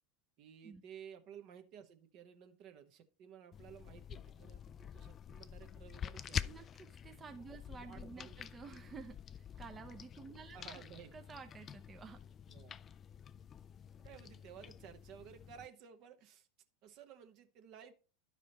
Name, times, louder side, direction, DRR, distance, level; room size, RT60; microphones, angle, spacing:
voice 1, 0.4-6.6 7.7-8.9 10.5-11.1 12.5-12.8 14.0-16.5 16.8-17.9, right 8 dB, 50° right, 8 dB, 1.0 m, -55 dB
sound 1, 3.5-15.7, left 8 dB, 30° left, 0.3 m, -47 dB
voice 2, 6.4-10.8 11.1-12.2, right 5 dB, 25° right, 5 dB, 0.7 m, -52 dB
11.0 x 4.9 x 4.0 m, 0.35 s
hypercardioid pair, 90°, 0 cm